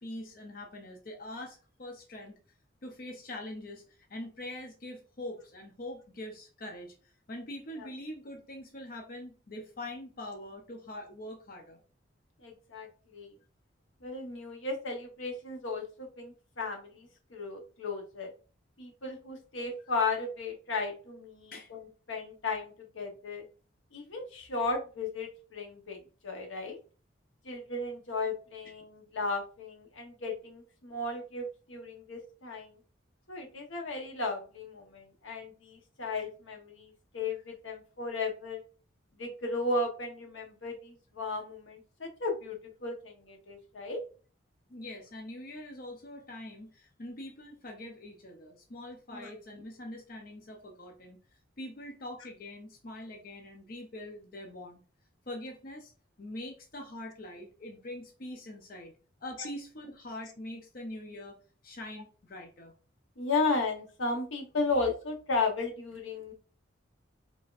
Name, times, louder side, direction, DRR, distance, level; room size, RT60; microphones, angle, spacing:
voice 1, 0.0-2.4 2.8-11.8 21.5-21.7 44.7-54.8 55.3-55.9 56.2-58.9 59.2-62.7, left 1 dB, 50° left, 2 dB, 0.6 m, -43 dB
voice 2, 12.4-12.9 13.1-13.3 14.0-18.3 18.8-23.4 23.9-26.8 27.4-32.8 33.3-38.6 39.2-44.0 49.1-49.3 63.2-66.3, left 3 dB, 85° left, 3 dB, 1.0 m, -35 dB
4.1 x 3.6 x 2.5 m, 0.37 s
head